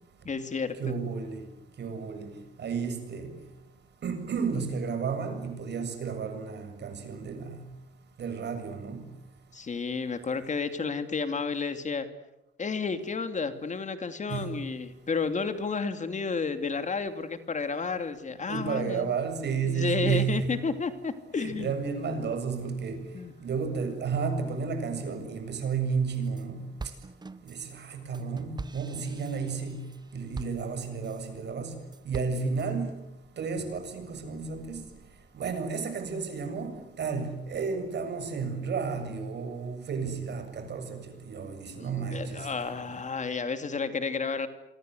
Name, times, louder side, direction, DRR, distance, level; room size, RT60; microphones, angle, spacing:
voice 1, 0.2-0.7 9.5-12.1 12.6-19.1 19.6-21.7 23.1-23.3 41.8-44.5, left 4 dB, 40° left, 2.8 m, -31 dB
voice 2, 0.8-1.4 1.8-2.3 2.6-3.3 4.0-7.6 8.2-9.0 14.3-14.6 18.5-20.5 21.3-23.0 23.4-26.7 27.5-31.8 32.0-33.0 33.4-34.8 35.3-42.5, right 5 dB, 60° right, 7.4 m, -32 dB
sound 1, 25.9-26.4 26.8-31.3 31.7-32.7, right 4 dB, 20° right, 1.1 m, -43 dB
28.0 x 24.0 x 8.0 m
cardioid pair, 90°, 20 cm